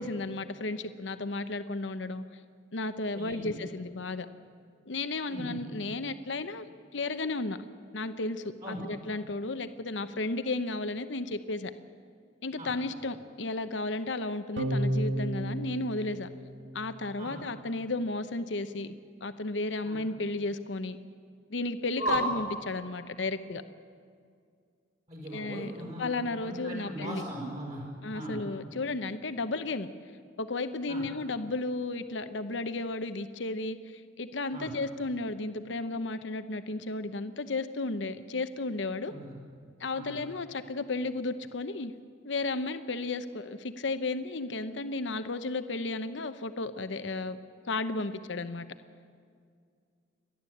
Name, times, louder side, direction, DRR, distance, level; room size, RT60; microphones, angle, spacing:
voice 1, 0.0-2.2 2.7-4.3 4.9-6.6 6.9-7.6 7.9-11.7 12.4-16.3 16.7-18.9 19.2-21.0 21.5-23.6 25.3-27.2 28.0-29.9 30.4-39.1 39.8-41.9 42.2-47.4 47.7-48.7, left 2 dB, 80° left, 11 dB, 0.9 m, -33 dB
voice 2, 3.1-3.5 5.3-5.6 8.6-8.8 12.6-12.7 17.2-17.4 19.8-20.0 22.0-22.2 25.1-26.1 26.4-27.8 28.1-28.4 30.9-31.0 34.5-34.7 39.1-39.2 39.9-40.2, right 1 dB, 40° right, -3 dB, 6.2 m, -37 dB
sound 1, 14.6-17.2, right 1 dB, 85° right, 1.8 m, -32 dB
29.0 x 12.0 x 8.5 m, 2.2 s
head